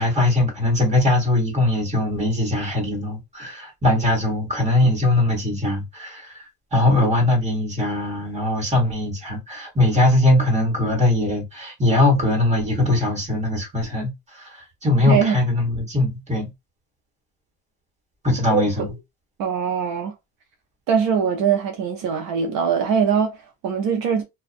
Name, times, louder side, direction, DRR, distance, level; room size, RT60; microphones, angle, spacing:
voice 1, 0.0-16.5 18.2-18.9, left 2 dB, 15° right, 1.2 m, -21 dB
voice 2, 15.1-15.4 18.5-18.9 19.4-20.1 20.9-24.2, right 7 dB, 60° right, 0.6 m, -22 dB
2.6 x 2.3 x 2.5 m
cardioid pair, 140°, 39 cm